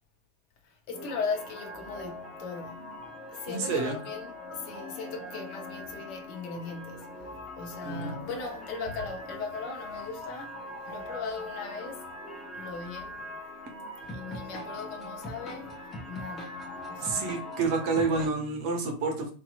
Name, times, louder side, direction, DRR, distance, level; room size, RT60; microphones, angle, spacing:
voice 1, 0.6-3.0 3.3-12.1 12.5-13.3 14.0-17.4, left 4 dB, 45° left, 0.7 m, -38 dB
sound 1, 0.9-18.3, left 1 dB, 20° left, 0.9 m, -41 dB
voice 2, 3.5-4.0 7.8-8.1 17.0-19.3, right 4 dB, 45° right, 0.7 m, -29 dB
2.9 x 2.3 x 2.4 m
figure-of-eight pair, 90°, 0 cm